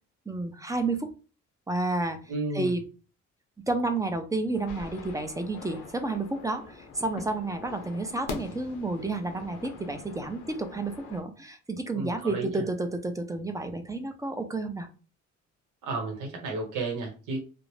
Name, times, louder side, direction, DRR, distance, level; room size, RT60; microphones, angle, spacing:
voice 1, 0.3-1.1 1.7-2.2 2.5-2.8 3.7-14.9, right 2 dB, 10° right, 7 dB, 0.4 m, -30 dB
voice 2, 2.3-2.7 11.9-12.6 15.8-17.4, right 3 dB, 85° right, 1 dB, 1.0 m, -32 dB
sound 1, 4.5-11.2, left 4 dB, 85° left, 0.8 m, -43 dB
2.5 x 2.0 x 3.1 m, 0.35 s
cardioid pair, 90°, 30 cm